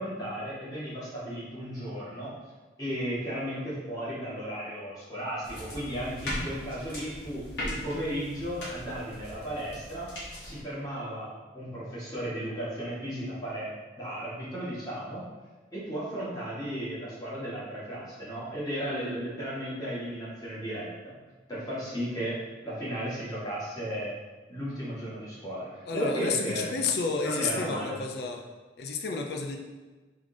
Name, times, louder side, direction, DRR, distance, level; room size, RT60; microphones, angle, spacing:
voice 1, 0.0-2.3 2.8-10.1 10.4-15.2 15.7-21.2 21.5-24.1 24.5-26.8 27.2-28.0, equal, 20° left, -8 dB, 1.5 m, -35 dB
sound 1, 5.4-10.6, left 1 dB, 80° left, 1.4 m, -39 dB
voice 2, 25.8-28.4 28.8-29.6, left 4 dB, 60° left, 2 dB, 0.4 m, -31 dB
3.8 x 3.3 x 3.7 m, 1.3 s
head